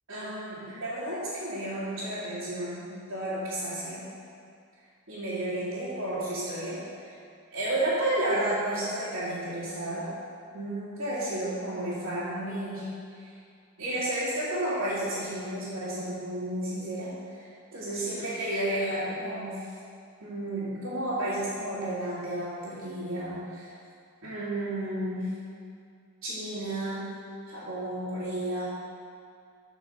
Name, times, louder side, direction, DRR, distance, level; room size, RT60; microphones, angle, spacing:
voice 1, 0.1-4.0 5.1-7.1 7.5-10.1 10.5-12.9 13.1-13.3 13.8-17.5 17.7-19.7 20.2-23.7 24.2-25.3 26.2-27.1 27.5-28.6, right 1 dB, 85° right, -13 dB, 2.2 m, -32 dB
8.8 x 4.7 x 6.5 m, 2.3 s
head